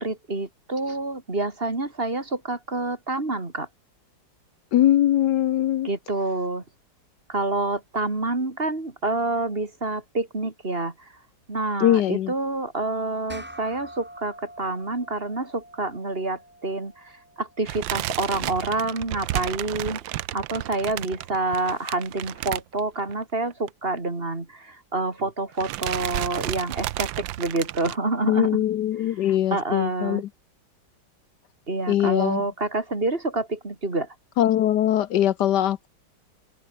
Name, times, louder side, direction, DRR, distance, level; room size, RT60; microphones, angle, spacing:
voice 1, 0.0-3.7 5.8-6.6 7.3-10.9 11.5-20.0 20.3-28.6 29.5-30.2 31.7-34.1, right 2 dB, 30° right, 3.1 m, -28 dB
voice 2, 4.7-5.9 11.8-12.3 28.3-30.3 31.9-32.4 34.4-35.9, left 12 dB, 70° left, 1.3 m, -21 dB
sound 1, 13.3-18.1, equal, 5° right, 3.0 m, -46 dB
sound 2, 17.7-23.2 23.5-23.7 24.0-24.1 25.0-25.3 25.6-28.0, right 15 dB, 85° right, 1.4 m, -32 dB
omnidirectional pair, 2.0 m